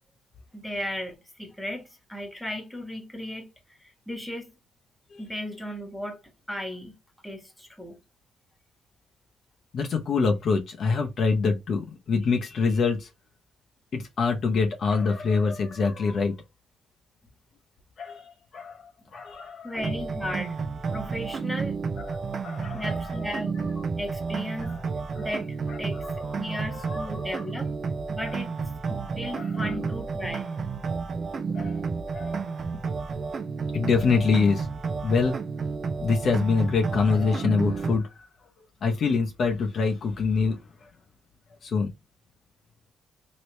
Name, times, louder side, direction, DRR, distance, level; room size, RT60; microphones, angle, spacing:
voice 1, 0.5-3.5 3.8-4.5 5.2-6.2 6.5-6.9 7.2-8.0 19.6-20.6 20.9-21.8 22.7-23.6 24.0-24.7 25.2-26.0 26.4-27.7 28.1-28.6 28.9-30.6, left 1 dB, 5° left, 1.4 m, -35 dB
voice 2, 9.7-13.1 13.9-16.3 18.0-19.8 22.0-23.2 23.6-23.8 24.6-24.8 25.1-25.3 25.7-27.4 28.2-28.3 28.9-29.7 31.5-31.9 32.1-32.4 33.7-34.7 35.0-35.3 36.0-38.3 38.8-40.9 41.6-41.9, left 4 dB, 55° left, 0.7 m, -26 dB
sound 1, 19.8-38.0, right 5 dB, 45° right, 0.5 m, -31 dB
3.1 x 2.8 x 3.1 m
cardioid pair, 90°, 0 cm